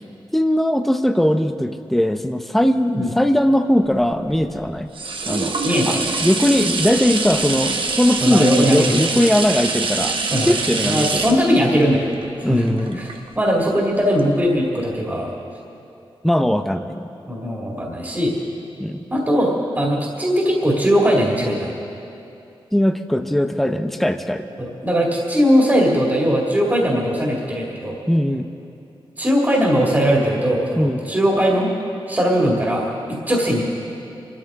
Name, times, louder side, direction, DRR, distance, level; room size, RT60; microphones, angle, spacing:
voice 1, 0.3-4.9 5.3-5.5 5.9-6.0 6.2-10.2 10.5-11.2 12.4-13.0 16.2-17.1 18.8-19.0 22.7-24.4 28.1-28.5 30.8-31.1, equal, ahead, 7 dB, 0.6 m, -19 dB
sound 1, 3.9-13.7 14.2-14.3, right 3 dB, 65° right, 1.1 m, -25 dB
voice 2, 5.6-6.0 8.2-9.0 10.3-10.5 10.8-12.2 12.5-15.3 17.3-18.4 19.1-21.7 24.6-28.0 29.2-31.7 32.1-33.6, equal, 20° right, -3 dB, 2.3 m, -19 dB
24.0 x 13.0 x 3.7 m, 2.7 s
wide cardioid pair, 90°, 9 cm